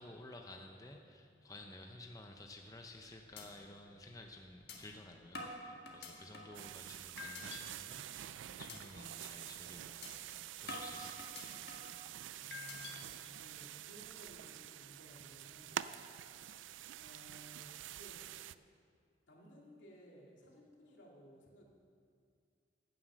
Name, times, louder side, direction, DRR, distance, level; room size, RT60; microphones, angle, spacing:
voice 1, 0.0-10.1 10.6-11.6 11.9-12.0, left 2 dB, 20° left, 3 dB, 0.6 m, -53 dB
sound 1, 2.7-3.0 3.4-3.5 3.9-4.0 4.7-4.8 5.3-6.6 7.2-7.6 8.0-8.3 8.7-8.8 9.2-9.4 10.0-10.1 10.7-11.9 12.5-12.9, left 3 dB, 60° left, 1.7 m, -47 dB
sound 2, 6.5-18.5, right 11 dB, 90° right, 0.3 m, -47 dB
voice 2, 12.4-18.2 19.3-21.6, equal, 85° left, -2 dB, 2.5 m, -59 dB
15.5 x 7.5 x 6.2 m, 2.3 s
head